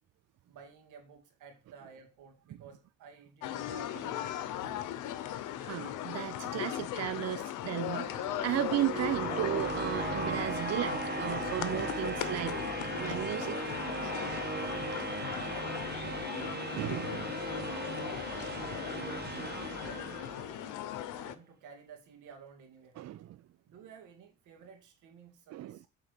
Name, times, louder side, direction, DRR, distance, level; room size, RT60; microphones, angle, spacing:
voice 1, 0.5-4.3 15.3-17.9 18.9-23.0 23.7-25.9, right 6 dB, 85° right, 2.1 m, -54 dB
sound 1, 3.4-21.4, left 12 dB, 90° left, 0.8 m, -38 dB
voice 2, 5.6-12.6 13.0-13.6 14.2-14.3 16.8-17.3 19.3-19.5 23.0-23.4 25.5-25.8, right 13 dB, 60° right, 0.5 m, -35 dB
sound 2, 7.8-20.8, right 3 dB, 35° right, 1.5 m, -38 dB
8.4 x 3.8 x 6.7 m
cardioid pair, 90°, 30 cm